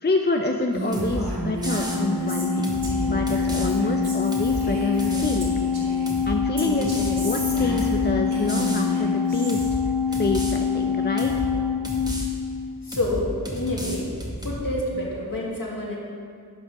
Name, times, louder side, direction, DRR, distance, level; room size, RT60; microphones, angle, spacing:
voice 1, 0.0-2.5 3.1-5.5 6.3-9.7 10.1-11.3, left 2 dB, 25° left, 2 dB, 0.6 m, -27 dB
Female speech woman speaking, 0.7-6.1 6.6-9.7, right 1 dB, 70° right, 2.2 m, -31 dB
sound 1, 0.9-1.2 1.6-2.0 2.6-3.7 4.3-4.6 5.0-5.5 6.1-6.3 6.8-8.0 8.5-8.9 9.5-9.8 10.1-10.5 11.2-11.5 11.8-12.3 12.9-13.2 13.5-14.6, equal, 10° right, 1.5 m, -32 dB
Organ, 1.6-12.9, left 6 dB, 75° left, 1.3 m, -25 dB
voice 2, 12.8-14.1 14.4-16.0, left 1 dB, 55° left, -3 dB, 2.0 m, -28 dB
11.0 x 5.0 x 4.9 m, 2.2 s
wide cardioid pair, 40°, 40 cm